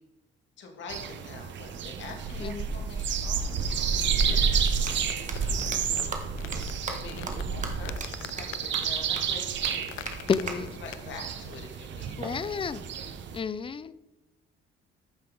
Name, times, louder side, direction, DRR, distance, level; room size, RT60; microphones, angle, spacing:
voice 1, 0.6-6.1 6.9-9.8 10.2-10.3 10.8-12.9, left 4 dB, 70° left, 3 dB, 1.9 m, -45 dB
sound 1, 0.9-13.4, right 6 dB, 65° right, 0.8 m, -30 dB
sound 2, 3.9-11.3, left 13 dB, 90° left, 0.5 m, -45 dB
sound 3, 4.9-5.0 5.3-5.4 5.7-5.8 6.1-6.2 6.5-6.6 6.9-7.0 7.3-7.4 7.6-7.7 8.0-8.1 8.4-8.5 8.7-8.8 9.2-9.3 9.6-9.7 10.1-10.2 10.5-10.6 12.2-13.2, right 4 dB, 40° right, 1.5 m, -37 dB
voice 2, 10.3-10.8 12.2-12.8 13.3-13.9, left 6 dB, 25° left, 16 dB, 0.4 m, -30 dB
14.0 x 5.8 x 3.8 m, 1.0 s
cardioid pair, 90°, 20 cm